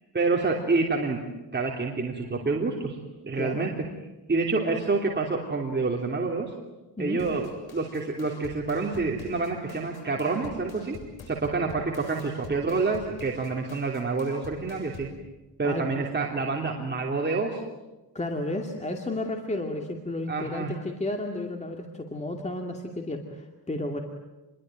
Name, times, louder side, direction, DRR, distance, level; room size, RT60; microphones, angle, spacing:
voice 1, 0.1-1.2 1.5-3.7 4.3-6.5 7.0-11.0 11.3-15.1 15.6-17.6 20.3-20.7, right 3 dB, 25° right, 0 dB, 3.2 m, -28 dB
voice 2, 3.3-3.7 7.0-7.2 15.6-16.0 18.1-24.0, left 1 dB, 15° left, 3 dB, 2.4 m, -32 dB
sound 1, 7.2-15.2, left 4 dB, 70° left, 7.7 m, -47 dB
28.5 x 22.5 x 9.2 m, 1.1 s
wide cardioid pair, 130°, 40 cm